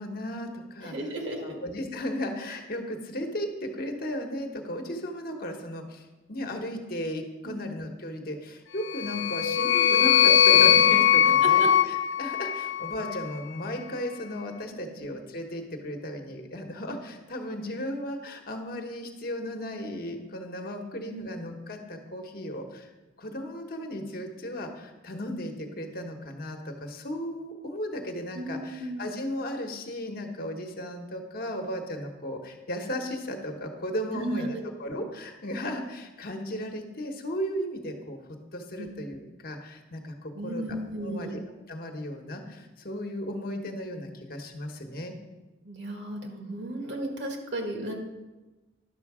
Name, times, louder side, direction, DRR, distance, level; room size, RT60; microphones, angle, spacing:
voice 1, 0.0-0.9 1.4-22.9 23.2-41.4 41.7-45.1, equal, 50° left, 3 dB, 1.2 m, -35 dB
voice 2, 0.8-1.6 7.4-7.6 11.2-11.7 21.1-21.3 28.3-29.1 34.1-34.7 38.8-38.9 40.3-41.4 45.6-47.9, right 1 dB, 65° right, 2 dB, 1.7 m, -34 dB
sound 1, 8.9-13.2, left 10 dB, 85° left, 0.4 m, -21 dB
11.5 x 6.3 x 4.9 m, 1.1 s
head